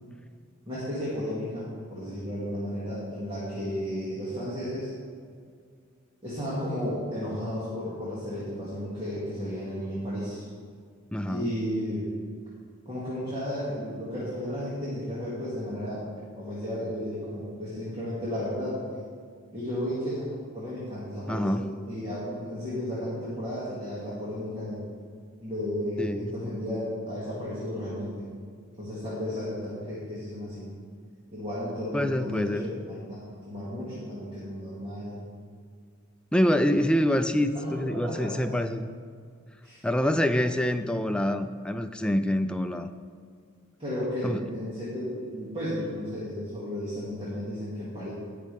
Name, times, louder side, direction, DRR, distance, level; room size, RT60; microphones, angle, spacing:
voice 1, 0.7-4.9 6.2-10.5 11.3-12.1 12.9-16.1 16.4-18.8 19.5-24.8 25.4-28.3 28.8-30.7 31.3-35.2 37.5-38.5 39.6-39.8 43.8-48.1, equal, 25° right, -10 dB, 2.3 m, -33 dB
voice 2, 11.1-11.5 21.3-21.7 26.0-26.2 31.9-32.7 36.3-38.9 39.8-42.9 44.2-44.4, equal, 5° left, 8 dB, 0.4 m, -26 dB
17.5 x 6.5 x 3.5 m, 2.1 s
head